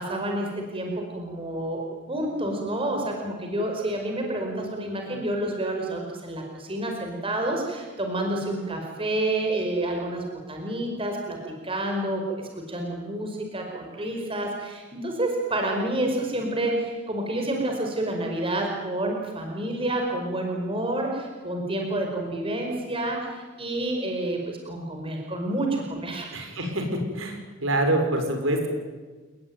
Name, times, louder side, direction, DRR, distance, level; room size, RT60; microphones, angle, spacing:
voice 1, 0.0-11.4 11.6-26.3, right 1 dB, 25° right, 2 dB, 5.2 m, -29 dB
voice 2, 26.3-28.7, right 1 dB, 70° right, 5 dB, 6.1 m, -26 dB
30.0 x 20.5 x 9.5 m, 1.3 s
head